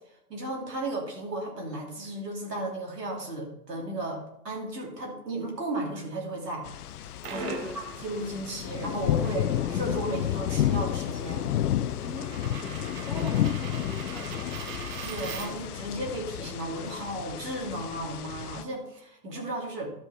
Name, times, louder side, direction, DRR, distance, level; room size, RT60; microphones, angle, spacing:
voice 1, 0.3-6.7 7.3-11.5 13.1-13.3 15.0-19.9, right 1 dB, 80° right, -1 dB, 2.9 m, -34 dB
sound 1, 6.7-18.6, left 11 dB, 70° left, 0.5 m, -31 dB
Coin (dropping), 6.9-15.8, right 6 dB, 25° right, 0.8 m, -43 dB
voice 2, 7.3-7.8 12.0-12.8 13.1-14.6, equal, ahead, -2 dB, 1.8 m, -40 dB
11.5 x 4.4 x 5.6 m, 0.80 s
figure-of-eight pair, 110°, 48 cm